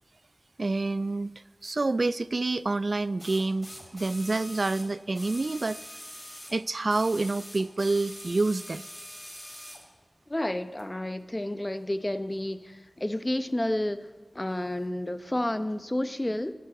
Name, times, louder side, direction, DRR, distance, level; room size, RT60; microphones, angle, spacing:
voice 1, 0.6-1.3 1.6-5.8 6.5-8.8, right 3 dB, 60° right, 0.3 m, -28 dB
sound 1, 1.6-1.7 3.2-6.6 6.9-9.8 10.8-10.9, equal, 5° left, 3.5 m, -44 dB
voice 2, 10.3-14.0 14.3-16.5, left 1 dB, 25° left, 0.9 m, -30 dB
16.0 x 9.4 x 7.7 m
wide cardioid pair, 45°, 0 cm